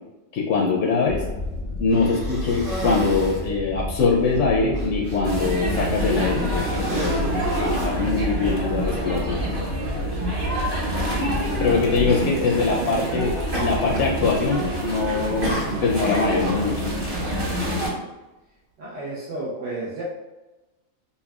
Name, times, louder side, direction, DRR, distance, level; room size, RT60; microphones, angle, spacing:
voice 1, 0.3-1.2 1.8-7.3 7.6-9.4 11.6-16.9, left 4 dB, 70° left, -2 dB, 0.9 m, -23 dB
sound 1, 1.1-12.2, left 2 dB, 90° left, 1.3 m, -32 dB
Cough, 1.9-3.5 4.2-4.3 4.7-5.2 6.0-6.2 6.6-8.5 9.5-9.6 11.4-11.6 12.0-12.3 13.5-14.2 14.5-14.9 15.4-16.2, right 1 dB, 45° right, 1.0 m, -33 dB
sound 2, 5.2-17.9, right 1 dB, 30° right, 0.7 m, -27 dB
voice 2, 11.7-13.0 18.8-20.0, right 3 dB, 70° right, -6 dB, 1.1 m, -33 dB
5.2 x 2.2 x 2.3 m, 1.1 s
omnidirectional pair, 1.3 m